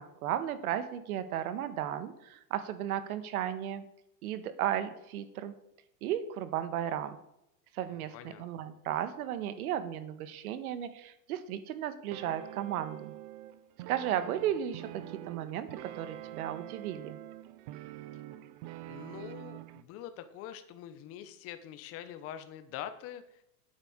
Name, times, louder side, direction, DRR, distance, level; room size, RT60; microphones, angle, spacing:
voice 1, 0.0-3.8 4.2-5.5 6.0-7.2 7.7-13.1 13.9-14.9 15.2-17.2, right 10 dB, 70° right, 11 dB, 1.6 m, -34 dB
voice 2, 7.9-8.4 18.9-23.4, left 10 dB, 30° left, 10 dB, 1.1 m, -44 dB
sound 1, 12.1-19.8, right 14 dB, 35° right, 0.5 m, -45 dB
9.3 x 9.0 x 6.6 m, 0.81 s
supercardioid pair, 160°, 46 cm